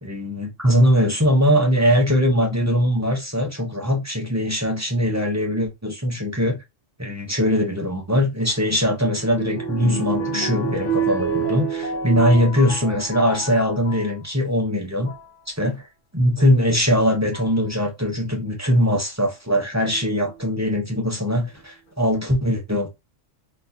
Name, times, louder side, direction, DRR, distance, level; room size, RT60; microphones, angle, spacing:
voice 1, 0.0-6.6 7.0-15.1 15.5-15.9 16.1-22.9, equal, 15° right, 0.6 m, -21 dB
sound 1, 8.5-14.1 14.8-15.3 16.5-16.6 17.3-17.6 19.8-20.4 21.1-21.2 21.4-21.5, right 4 dB, 75° left, 1.5 m, -29 dB
4.0 x 2.5 x 2.7 m
omnidirectional pair, 1.3 m